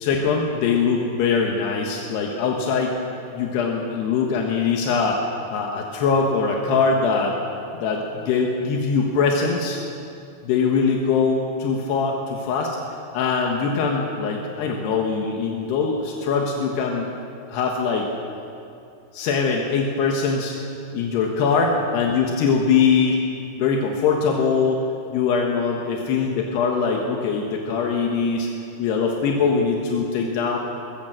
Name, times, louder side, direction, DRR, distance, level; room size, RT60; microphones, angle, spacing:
voice 1, 0.0-3.0 3.3-5.2 5.5-7.4 7.7-9.8 10.4-12.8 13.1-17.1 17.5-18.1 19.1-20.5 20.9-23.2 23.6-24.8 25.1-28.5 28.8-30.6, left 5 dB, 85° left, 0 dB, 3.5 m, -22 dB
20.5 x 17.0 x 7.7 m, 2.6 s
omnidirectional pair, 4.7 m